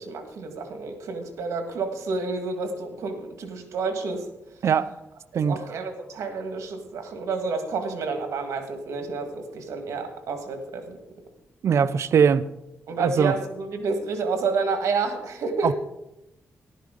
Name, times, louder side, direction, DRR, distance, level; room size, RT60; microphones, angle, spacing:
voice 1, 0.0-4.2 5.3-11.0 12.9-15.7, right 4 dB, 85° right, 1.8 m, -29 dB
voice 2, 11.6-12.4 13.0-13.3 15.6-15.7, right 7 dB, 65° right, 0.5 m, -20 dB
14.5 x 11.5 x 3.8 m
cardioid pair, 90°, 5 cm